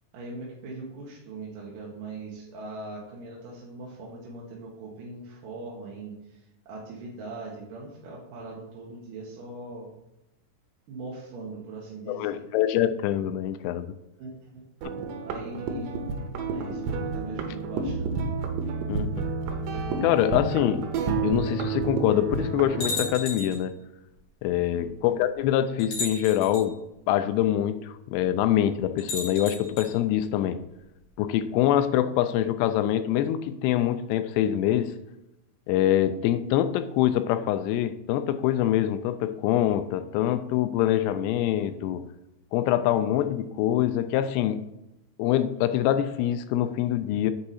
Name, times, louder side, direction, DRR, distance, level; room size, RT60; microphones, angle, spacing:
voice 1, 0.1-9.9 10.9-12.5 14.2-14.6 15.3-15.9 16.5-18.3 24.7-24.9, right 3 dB, 65° right, 2.4 m, -41 dB
voice 2, 12.1-13.9 18.9-19.1 20.0-20.8 21.2-23.7 24.4-26.8 27.1-30.6 31.2-34.9 35.7-42.1 42.5-44.6 45.2-47.3, left 11 dB, 85° left, 2.6 m, -24 dB
sound 1, 14.8-23.1, right 4 dB, 85° right, 3.1 m, -30 dB
sound 2, 22.8-23.7 24.8-24.9 25.8-26.7 29.0-29.9, left 3 dB, 50° left, 3.4 m, -34 dB
8.7 x 4.8 x 4.2 m
omnidirectional pair, 5.0 m